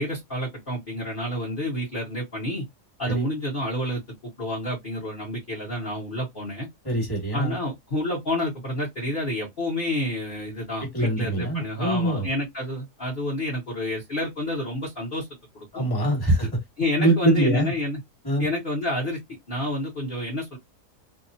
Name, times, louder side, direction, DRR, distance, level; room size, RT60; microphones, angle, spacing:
voice 1, 0.0-2.7 3.0-6.7 7.3-15.3 15.5-15.9 16.8-18.0 18.4-19.2 19.5-20.6, left 1 dB, 35° left, 1.2 m, -29 dB
voice 2, 6.8-7.6 10.8-12.3 15.7-16.6 17.0-17.7 18.2-18.5, right 1 dB, 15° left, 1.5 m, -23 dB
2.9 x 2.4 x 2.7 m
omnidirectional pair, 1.7 m